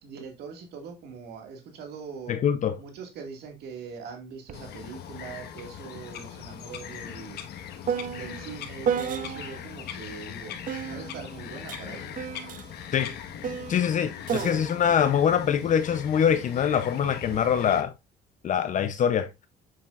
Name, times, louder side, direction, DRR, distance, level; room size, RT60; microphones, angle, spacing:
voice 1, 0.0-2.4 2.8-7.4 8.1-12.2, right 5 dB, 75° right, 2.1 m, -42 dB
voice 2, 2.3-2.8 12.9-13.1 13.7-17.9 18.4-19.3, left 8 dB, 50° left, 0.8 m, -24 dB
Bird vocalization bird call bird song, 4.5-17.8, left 9 dB, 75° left, 1.5 m, -40 dB
sound 1, 4.5-4.6 5.0-9.7 10.7-16.2 17.0-17.5, right 8 dB, 50° right, 0.9 m, -34 dB
8.1 x 7.5 x 2.5 m
cardioid pair, 110°, 17 cm